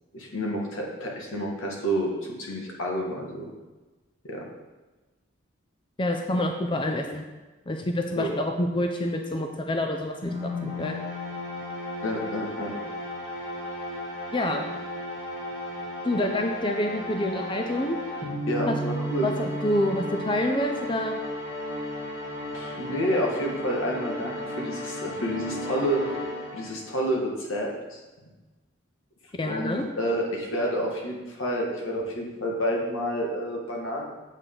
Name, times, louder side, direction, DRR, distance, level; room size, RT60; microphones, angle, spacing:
voice 1, 0.1-2.1 2.4-3.5 4.2-4.5 8.2-8.3 12.0-12.7 18.5-19.3 22.5-26.0 26.5-28.0 29.4-34.0, equal, 85° left, -1 dB, 1.7 m, -29 dB
voice 2, 6.0-7.3 7.7-11.0 14.3-14.7 16.0-18.0 18.7-18.8 19.2-21.2 29.3-29.9, left 1 dB, 25° left, 4 dB, 0.4 m, -27 dB
sound 1, 10.2-27.0, left 1 dB, 55° left, 2.5 m, -34 dB
8.2 x 6.1 x 3.8 m, 1.2 s
head